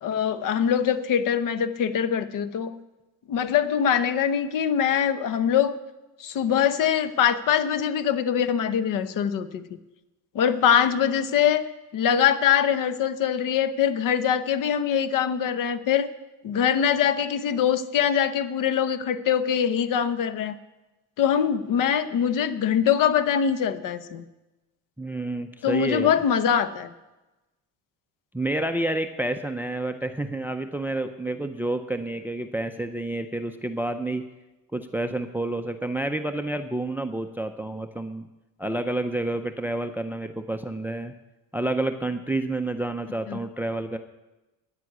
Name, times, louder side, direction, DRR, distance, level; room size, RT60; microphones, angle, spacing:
voice 1, 0.0-2.7 3.3-5.7 6.2-9.6 10.3-11.7 11.9-16.1 16.4-20.5 21.2-24.2 25.6-26.9 43.3-43.4, left 8 dB, 50° left, 12 dB, 1.0 m, -23 dB
voice 2, 25.0-26.1 28.3-34.3 34.7-38.3 38.6-41.1 41.5-44.0, right 2 dB, 5° right, 9 dB, 0.5 m, -29 dB
9.9 x 7.6 x 9.4 m, 1.0 s
cardioid pair, 125°, 41 cm